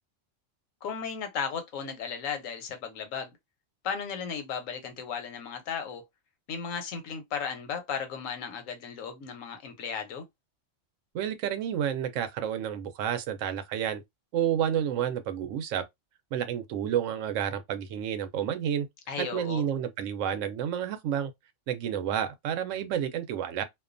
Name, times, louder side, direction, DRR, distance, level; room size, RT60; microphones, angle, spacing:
voice 1, 0.8-3.3 3.8-6.0 6.5-10.3 19.1-19.6, left 6 dB, 85° left, 1.1 m, -35 dB
voice 2, 11.1-14.0 14.3-15.8 16.3-18.9 19.2-21.3 21.7-23.6, right 9 dB, 75° right, 0.9 m, -30 dB
2.4 x 2.2 x 2.4 m
omnidirectional pair, 1.3 m